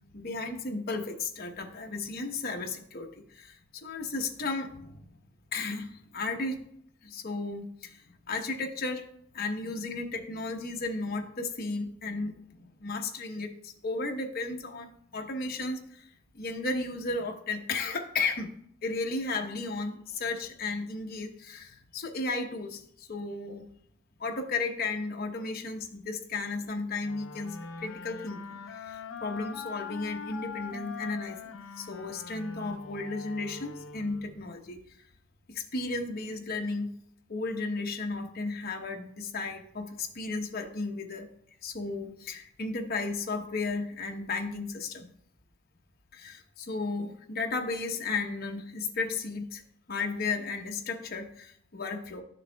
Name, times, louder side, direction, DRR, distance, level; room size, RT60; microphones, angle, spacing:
voice 1, 0.1-5.1 5.5-6.6 7.0-9.1 9.3-12.4 12.8-16.1 16.3-18.5 18.8-23.6 24.2-35.0 35.5-36.9 37.3-41.3 41.6-45.1 46.1-49.6 49.9-52.2, left 3 dB, 50° left, 3 dB, 0.9 m, -34 dB
sound 1, 27.0-34.5, left 5 dB, 75° left, 0.7 m, -43 dB
12.0 x 6.5 x 2.3 m, 0.69 s
head